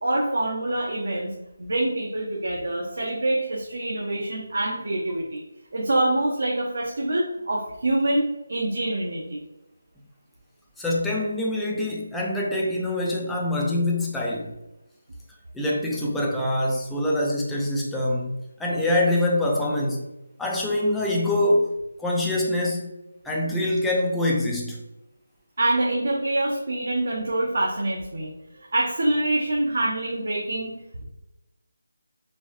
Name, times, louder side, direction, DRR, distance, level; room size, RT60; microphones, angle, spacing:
voice 1, 0.0-1.3 1.6-5.4 5.7-9.4 25.6-28.3 28.7-31.0, right 1 dB, 65° right, -2 dB, 0.9 m, -25 dB
voice 2, 10.8-14.6 15.5-20.0 20.4-21.7 22.0-22.9 23.2-24.8, left 1 dB, 5° left, -4 dB, 0.4 m, -24 dB
4.3 x 3.1 x 3.0 m, 0.94 s
figure-of-eight pair, 170°, 0 cm